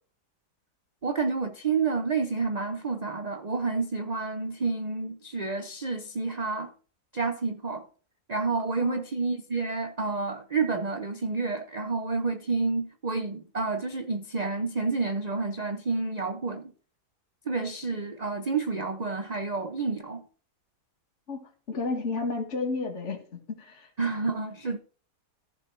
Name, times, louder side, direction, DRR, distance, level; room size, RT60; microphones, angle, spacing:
voice 1, 1.0-6.7 7.1-7.9 8.3-16.7 17.5-20.3 24.0-24.8, right 4 dB, 35° right, 0.6 m, -29 dB
voice 2, 21.3-23.9, left 3 dB, 45° left, 2.2 m, -32 dB
15.0 x 5.4 x 4.6 m
omnidirectional pair, 1.8 m